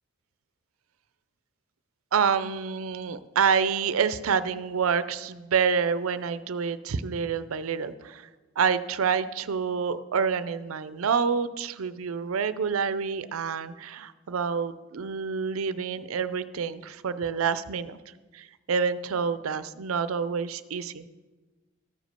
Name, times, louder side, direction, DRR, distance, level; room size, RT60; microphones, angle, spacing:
voice 1, 2.1-8.3 8.6-18.0 18.3-21.0, right 6 dB, 85° right, 14 dB, 0.5 m, -27 dB
14.0 x 5.1 x 6.7 m, 1.2 s
head